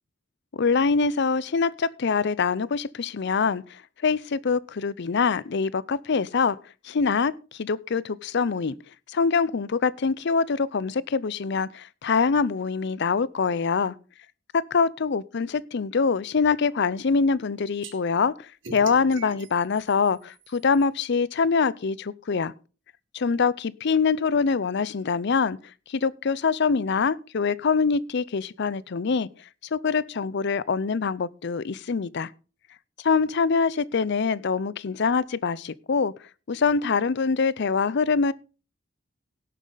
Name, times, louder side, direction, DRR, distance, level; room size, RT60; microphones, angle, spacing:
voice 1, 0.5-3.6 4.0-6.6 6.8-7.3 7.6-8.7 9.1-14.0 14.5-18.3 18.7-22.5 23.1-25.6 25.9-29.3 29.7-32.3 33.0-36.1 36.5-38.3, left 5 dB, 60° left, 0.5 m, -24 dB
sound 1, 17.8-17.9 18.6-20.8, right 4 dB, 70° right, 2.1 m, -43 dB
17.5 x 7.5 x 3.9 m
head